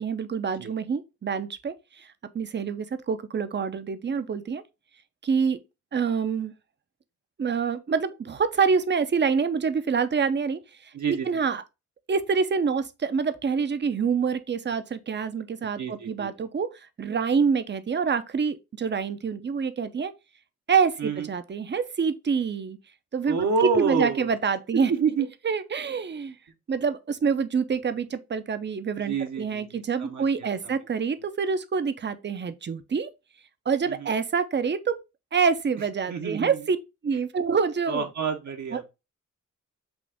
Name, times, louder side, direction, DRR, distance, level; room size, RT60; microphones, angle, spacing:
voice 1, 0.0-4.6 5.2-5.6 5.9-6.5 7.4-11.6 12.1-20.1 20.7-22.8 23.1-24.9 25.4-26.3 26.7-33.1 33.7-35.0 35.3-36.8 37.0-38.0 38.7-38.8, right 5 dB, 35° right, 0.6 m, -26 dB
voice 2, 10.9-11.4 15.8-16.3 21.0-21.3 23.2-24.3 24.9-25.3 29.0-30.8 33.9-34.1 36.1-36.6 37.9-38.9, right 5 dB, 60° right, 1.0 m, -28 dB
6.2 x 2.4 x 3.5 m
cardioid pair, 65°, 32 cm